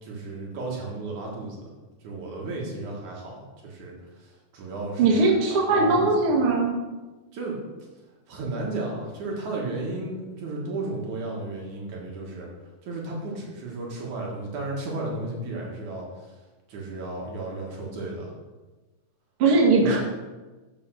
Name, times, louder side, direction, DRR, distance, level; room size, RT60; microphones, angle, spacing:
voice 1, 0.0-1.6 2.0-3.9 4.2-6.3 7.3-7.6 8.3-12.5 12.8-16.3 16.7-18.3 19.8-20.0, right 2 dB, 65° right, -2 dB, 2.9 m, -34 dB
voice 2, 5.0-6.7 19.4-20.0, right 3 dB, 50° right, -2 dB, 2.2 m, -20 dB
7.0 x 6.9 x 6.4 m, 1.2 s
omnidirectional pair, 3.8 m